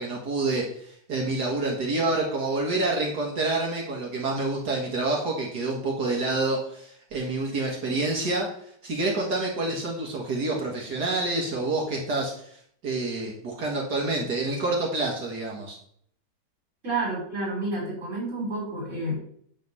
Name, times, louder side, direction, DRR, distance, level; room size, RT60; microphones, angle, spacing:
voice 1, 0.0-8.5 8.8-15.8, right 2 dB, 70° right, -1 dB, 2.3 m, -28 dB
voice 2, 16.8-19.2, right 2 dB, 45° right, -3 dB, 4.7 m, -30 dB
10.5 x 4.3 x 6.7 m, 0.64 s
omnidirectional pair, 1.8 m